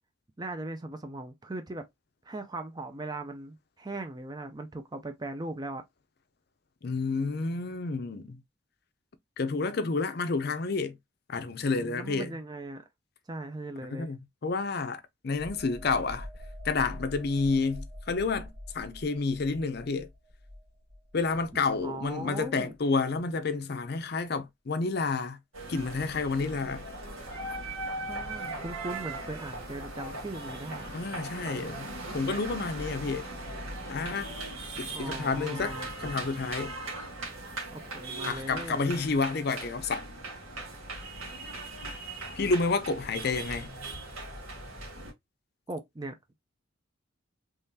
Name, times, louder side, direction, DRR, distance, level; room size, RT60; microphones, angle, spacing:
voice 1, 0.4-1.8 2.2-5.8 11.8-12.8 13.3-14.1 21.8-22.7 28.1-31.1 34.9-35.9 37.7-38.9 45.7-46.1, right 2 dB, 20° right, 0.5 m, -39 dB
voice 2, 6.8-8.4 9.4-11.0 11.3-12.3 13.9-14.2 14.4-16.3 16.6-20.1 21.1-25.4 25.7-26.8 30.9-31.9 32.1-33.3 33.9-34.3 34.8-36.8 38.2-40.0 42.4-43.7, left 4 dB, 50° left, 0.5 m, -30 dB
sound 1, 15.3-22.8 23.1-23.3, left 1 dB, 65° right, 2.2 m, -45 dB
sound 2, 25.5-45.1, right 2 dB, 85° right, 1.7 m, -39 dB
3.7 x 3.2 x 2.7 m
head